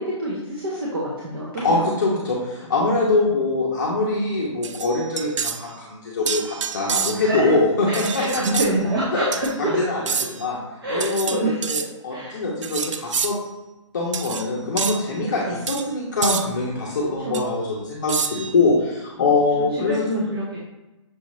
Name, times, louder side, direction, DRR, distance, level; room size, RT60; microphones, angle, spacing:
voice 1, 0.0-1.9 7.2-7.5 7.9-9.8 10.8-11.7 12.1-12.4 15.4-15.6 17.2-17.4 19.7-20.4, right 1 dB, 45° right, -6 dB, 0.8 m, -26 dB
voice 2, 1.6-8.4 9.1-10.6 10.9-13.4 13.9-20.2, left 3 dB, 35° left, -5 dB, 0.7 m, -23 dB
sound 1, 4.6-5.6 6.3-7.4 7.9-8.7 9.3-9.5 10.1-10.4 11.0-11.9 12.6-13.4 14.1-14.5 14.8-15.0 15.7-15.8 16.2-16.5 17.3-17.4 18.1-18.6, right 6 dB, 65° right, 0.4 m, -27 dB
6.2 x 2.5 x 3.1 m, 1.0 s
hypercardioid pair, 180°, 17 cm